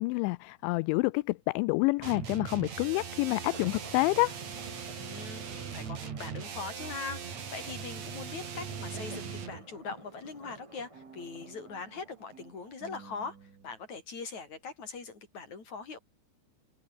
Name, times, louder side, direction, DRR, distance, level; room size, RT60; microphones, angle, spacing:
voice 1, 0.0-4.4, left 24 dB, 85° left, 2.9 m, -28 dB
sound 1, 2.0-9.6, right 7 dB, 40° right, 3.5 m, -40 dB
sound 2, 2.6-13.0, right 1 dB, 5° right, 5.8 m, -52 dB
voice 2, 4.9-16.0, left 4 dB, 40° left, 6.7 m, -42 dB
sound 3, 6.1-9.7 10.0-13.8, right 6 dB, 85° right, 7.7 m, -55 dB
omnidirectional pair, 5.4 m